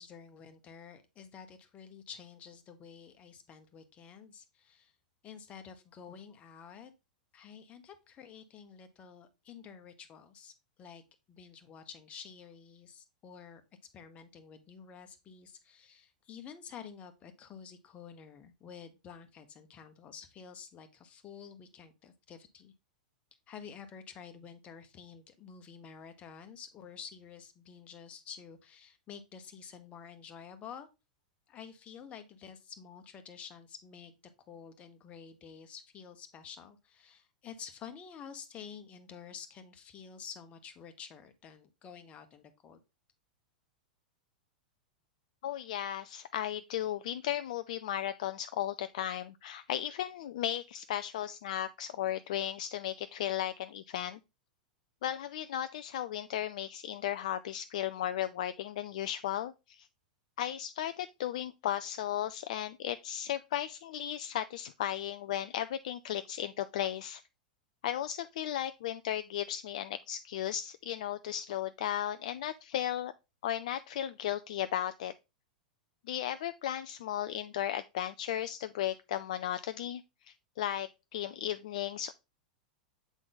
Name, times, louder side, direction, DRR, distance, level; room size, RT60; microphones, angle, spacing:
voice 1, 0.0-4.9 5.2-6.9 7.3-11.0 11.3-13.6 13.9-22.7 23.5-30.9 31.5-42.8, left 7 dB, 30° left, 1.2 m, -50 dB
voice 2, 45.4-54.2 55.0-59.9 60.4-67.2 67.8-73.1 73.4-75.1 76.1-82.1, left 11 dB, 55° left, 0.3 m, -35 dB
8.1 x 3.8 x 3.8 m
figure-of-eight pair, 95°, 5 cm